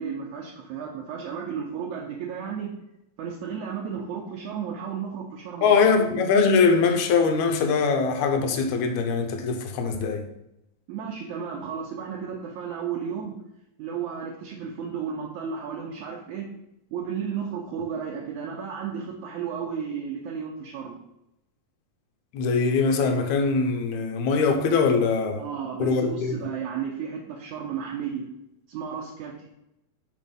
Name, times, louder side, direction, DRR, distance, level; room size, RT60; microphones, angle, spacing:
voice 1, 0.0-2.7 3.2-5.8 10.9-13.4 13.8-16.5 16.9-21.0 25.4-28.3 28.7-29.4, right 7 dB, 75° right, 2.0 m, -33 dB
voice 2, 5.6-10.2 22.3-25.4 25.8-26.4, left 5 dB, 70° left, 2.1 m, -22 dB
6.4 x 5.5 x 5.3 m
omnidirectional pair, 3.7 m